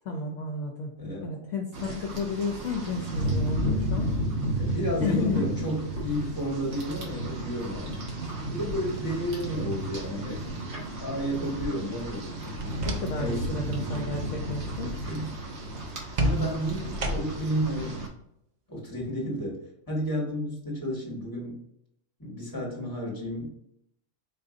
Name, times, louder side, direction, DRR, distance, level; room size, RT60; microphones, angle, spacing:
voice 1, 0.0-0.9 1.2-4.1 5.0-5.4 12.8-14.9, left 4 dB, 70° left, 1 dB, 0.9 m, -32 dB
voice 2, 1.0-1.4 4.6-7.9 8.5-10.4 11.0-12.8 13.1-13.6 15.1-15.3 16.2-18.0 18.7-21.6 22.2-23.5, equal, 15° left, -3 dB, 1.3 m, -32 dB
Rain, 1.7-18.1, right 1 dB, 60° right, 1.2 m, -33 dB
sound 1, 12.4-13.4 13.7-14.1 16.2-17.6, right 1 dB, 90° right, 0.3 m, -31 dB
4.2 x 2.6 x 3.7 m, 0.76 s
omnidirectional pair, 1.4 m